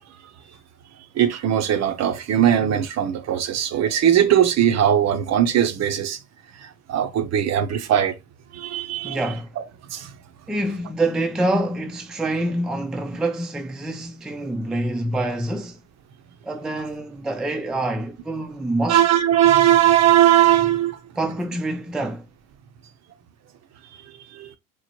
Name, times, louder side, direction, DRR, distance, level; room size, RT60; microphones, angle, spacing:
voice 1, 1.2-6.2 6.6-8.2 8.5-9.2 9.6-9.7 9.9-10.1 18.9-21.0 24.3-24.5, right 11 dB, 50° right, 0.6 m, -19 dB
voice 2, 9.0-9.5 10.5-15.8 16.4-19.0 21.2-22.2, right 1 dB, ahead, 0.3 m, -26 dB
3.0 x 2.1 x 2.8 m
hypercardioid pair, 65°, 35 cm